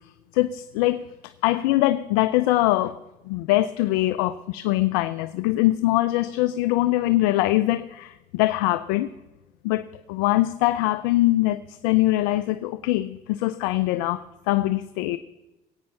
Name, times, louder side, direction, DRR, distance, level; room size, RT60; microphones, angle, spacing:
voice 1, 0.3-3.0 3.3-9.1 9.6-15.2, left 16 dB, 90° left, 0.5 m, -23 dB
21.0 x 8.8 x 5.6 m
supercardioid pair, 85°, 18 cm